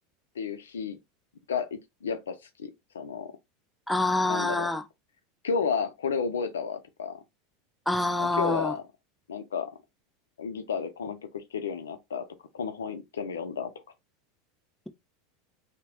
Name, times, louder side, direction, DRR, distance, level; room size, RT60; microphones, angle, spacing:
voice 1, 0.4-1.0 1.5-3.3 4.2-4.7 5.4-7.2 8.2-8.8 9.3-9.7 10.4-12.3 12.5-13.7, left 6 dB, 80° left, 0.5 m, -32 dB
voice 2, 3.9-4.8 7.9-8.7, left 2 dB, 5° left, 0.4 m, -26 dB
2.8 x 2.0 x 2.9 m
hypercardioid pair, 90°, 0 cm